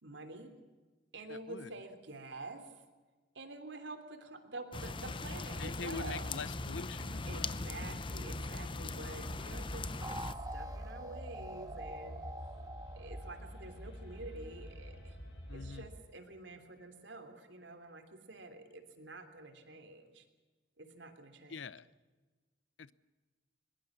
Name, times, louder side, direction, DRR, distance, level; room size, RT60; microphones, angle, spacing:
voice 1, 0.0-0.5 1.1-2.8 3.3-6.4 7.3-12.2 12.9-15.2 15.5-20.2 20.8-21.6, right 2 dB, 75° right, 3.1 m, -48 dB
voice 2, 1.3-1.7 5.6-7.5 15.5-15.9 21.5-21.9 22.8-22.9, left 4 dB, 90° left, 0.7 m, -44 dB
sound 1, 4.7-10.3, left 3 dB, 25° left, 0.8 m, -41 dB
sound 2, 5.5-15.8, equal, 70° left, 4.9 m, -47 dB
sound 3, 10.0-14.5, right 1 dB, 20° right, 1.8 m, -46 dB
22.0 x 21.5 x 7.4 m
head